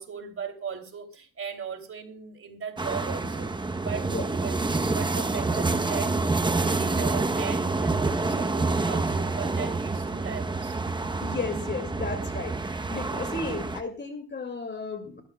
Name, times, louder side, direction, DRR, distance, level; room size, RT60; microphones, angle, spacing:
voice 1, 0.0-10.8, right 6 dB, 45° right, 3.0 m, -38 dB
sound 1, 2.8-13.8, right 3 dB, 15° right, 0.9 m, -27 dB
voice 2, 11.2-15.2, left 4 dB, 35° left, 2.2 m, -34 dB
21.0 x 13.0 x 2.3 m
cardioid pair, 90°, 30 cm